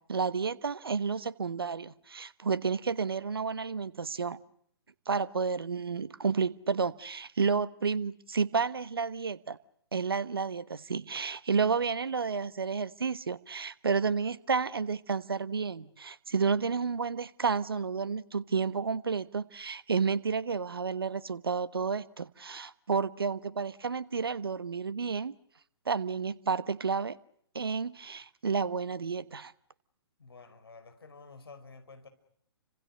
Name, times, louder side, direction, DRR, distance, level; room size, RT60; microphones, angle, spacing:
voice 1, 0.1-4.4 5.1-9.6 9.9-25.4 25.9-27.2 27.5-29.5, right 5 dB, 65° right, 1.3 m, -31 dB
voice 2, 30.2-32.1, left 4 dB, 65° left, 5.3 m, -51 dB
29.5 x 26.0 x 6.4 m
figure-of-eight pair, 125°, 14 cm